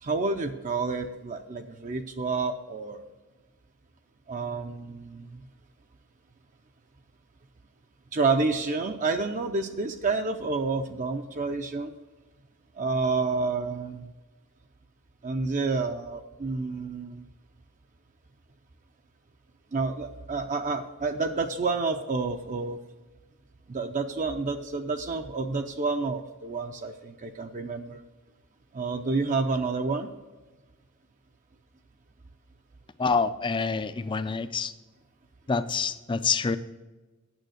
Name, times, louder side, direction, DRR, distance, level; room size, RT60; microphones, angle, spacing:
voice 1, 0.0-3.0 4.3-5.5 8.1-11.9 12.8-14.1 15.2-17.3 19.7-22.8 23.7-28.0 28.7-30.1, right 3 dB, 35° right, 5 dB, 0.5 m, -29 dB
voice 2, 33.0-34.7 35.5-36.6, left 5 dB, 20° left, 12 dB, 0.4 m, -27 dB
9.1 x 7.1 x 6.4 m, 1.2 s
head